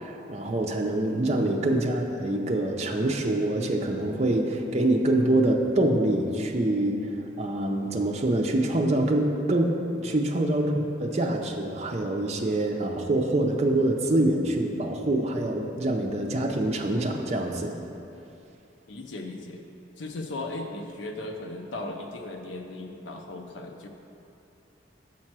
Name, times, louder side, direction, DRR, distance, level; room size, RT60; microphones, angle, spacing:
voice 1, 0.0-7.0 7.4-9.7 10.0-17.7, right 1 dB, 35° right, 2 dB, 0.5 m, -25 dB
voice 2, 9.9-10.2 18.9-19.6 20.0-23.9, left 2 dB, 80° left, 3 dB, 0.5 m, -37 dB
7.3 x 4.3 x 6.0 m, 2.8 s
head